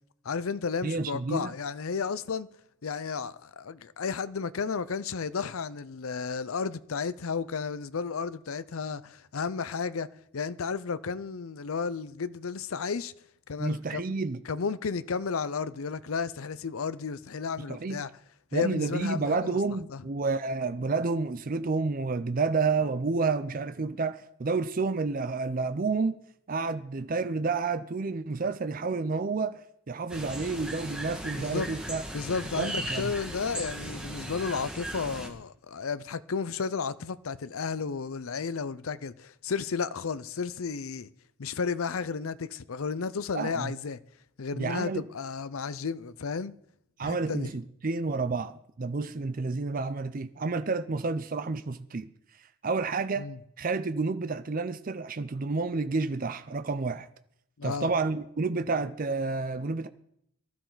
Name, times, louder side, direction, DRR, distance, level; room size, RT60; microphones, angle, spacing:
voice 1, 0.2-2.5 2.8-13.1 13.5-14.0 14.5-18.1 18.5-19.6 19.9-20.0 31.4-31.7 32.1-41.1 41.4-44.0 44.4-46.5 47.0-47.5 53.2-53.4 57.6-57.9, left 5 dB, 85° left, 0.6 m, -33 dB
voice 2, 0.8-1.5 13.6-14.4 17.7-18.0 18.5-26.2 26.5-29.6 29.9-32.0 32.6-33.1 43.3-43.7 44.5-45.0 47.0-52.1 52.6-53.3 53.6-57.1 57.6-59.9, right 4 dB, 40° right, 0.5 m, -30 dB
sound 1, 30.1-35.3, right 1 dB, 5° right, 1.8 m, -37 dB
19.0 x 12.5 x 4.0 m
head